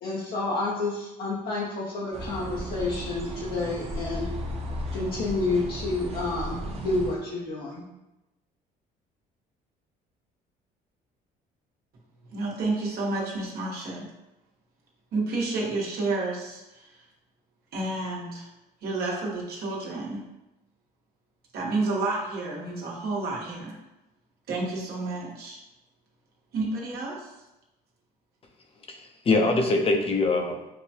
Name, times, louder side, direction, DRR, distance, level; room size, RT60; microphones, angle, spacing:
voice 1, 0.0-4.3 4.9-7.8, left 3 dB, 70° left, -5 dB, 0.8 m, -29 dB
sound 1, 2.1-7.1, equal, 35° right, 0.7 m, -35 dB
voice 2, 12.3-14.1 15.1-17.0 17.7-18.5 18.8-20.2 21.5-23.7 24.5-25.6 26.5-27.3, right 2 dB, 65° right, -3 dB, 1.2 m, -30 dB
voice 3, 28.9-30.7, left 2 dB, 35° left, 3 dB, 0.7 m, -24 dB
6.5 x 2.2 x 2.8 m, 0.95 s
cardioid pair, 110°, 17 cm